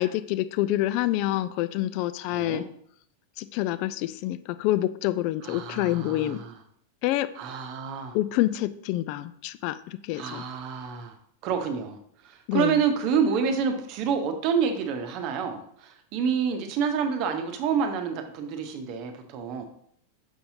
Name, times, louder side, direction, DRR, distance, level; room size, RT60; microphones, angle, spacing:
voice 1, 0.0-2.6 3.4-6.4 7.0-7.3 8.1-10.4 12.5-12.8, left 15 dB, 45° left, 14 dB, 0.3 m, -27 dB
voice 2, 2.3-2.6 5.4-6.6 7.3-8.2 10.1-11.2 11.4-19.6, right 6 dB, 40° right, 6 dB, 0.8 m, -28 dB
6.3 x 5.5 x 2.8 m, 0.66 s
figure-of-eight pair, 90°, 0 cm